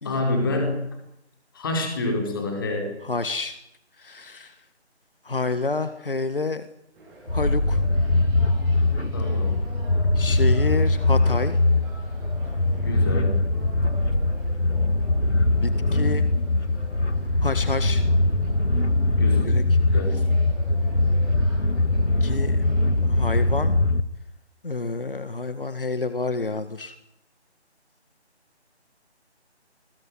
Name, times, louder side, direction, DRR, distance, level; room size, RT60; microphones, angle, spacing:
voice 1, 0.0-0.8 1.5-2.9 9.1-9.6 12.8-13.4 19.2-19.4 19.9-20.2, left 2 dB, 20° left, 2 dB, 4.9 m, -27 dB
voice 2, 3.0-3.6 4.0-4.6 5.2-6.7 7.3-7.8 10.2-11.6 15.6-16.3 17.4-18.0 19.4-19.6 22.2-22.6 23.0-23.8 24.6-27.0, left 3 dB, 50° left, 11 dB, 1.7 m, -28 dB
sound 1, 6.9-23.6, right 1 dB, 5° right, 7.6 m, -46 dB
sound 2, 7.3-24.0, left 2 dB, 80° left, 2.2 m, -22 dB
22.5 x 22.0 x 9.5 m, 0.79 s
figure-of-eight pair, 160°, 34 cm